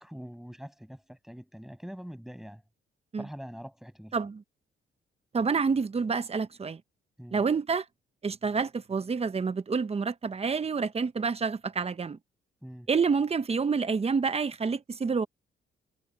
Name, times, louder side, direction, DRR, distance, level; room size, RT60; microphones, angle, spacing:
voice 1, 0.0-2.6 3.2-4.3 7.2-7.5 12.6-12.9, equal, ahead, 7.5 m, -44 dB
voice 2, 5.3-6.8 7.3-7.8 8.2-12.2 12.9-15.3, right 5 dB, 30° right, 1.2 m, -28 dB
cardioid pair, 90°, 20 cm